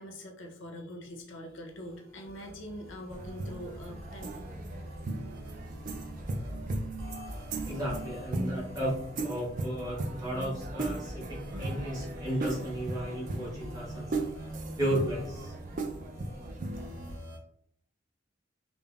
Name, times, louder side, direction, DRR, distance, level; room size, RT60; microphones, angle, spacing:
voice 1, 0.0-4.5, equal, 70° left, 1 dB, 0.5 m, -43 dB
sound 1, 1.4-17.4, equal, 85° right, 0.7 m, -46 dB
sound 2, 3.1-17.2, right 2 dB, 40° right, 0.3 m, -37 dB
voice 2, 7.7-14.5 14.8-15.5, equal, 20° right, -6 dB, 1.0 m, -34 dB
3.4 x 2.1 x 2.2 m, 0.67 s
head